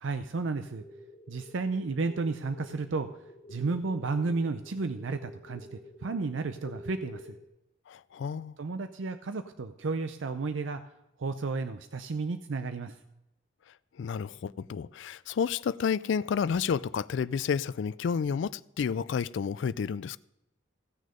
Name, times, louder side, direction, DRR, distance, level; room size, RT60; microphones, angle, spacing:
voice 1, 0.0-0.8 1.3-3.1 3.5-7.4 8.6-10.8 11.2-13.0, right 3 dB, 75° right, 0.5 m, -32 dB
sound 1, 0.7-7.5, left 1 dB, 15° left, 3.2 m, -49 dB
voice 2, 7.9-8.5 14.0-20.2, left 6 dB, 70° left, 0.3 m, -30 dB
16.5 x 6.5 x 5.2 m
head